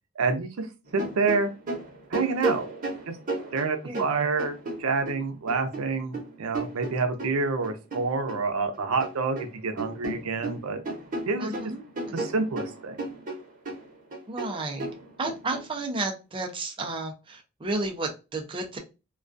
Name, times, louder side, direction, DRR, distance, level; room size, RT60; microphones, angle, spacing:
voice 1, 0.2-0.7 0.9-1.5 2.1-2.7 3.1-3.2 3.5-10.8 11.3-11.5 12.1-13.0, right 4 dB, 85° right, 6 dB, 0.5 m, -28 dB
sound 1, 0.9-5.2 5.5-8.4 8.7-9.5 9.8-15.6, right 2 dB, 40° right, 0.8 m, -34 dB
voice 2, 11.4-11.8 12.2-12.3 14.3-14.9 15.2-18.8, right 2 dB, 25° right, 2 dB, 0.4 m, -32 dB
2.3 x 2.2 x 2.5 m, 0.28 s
head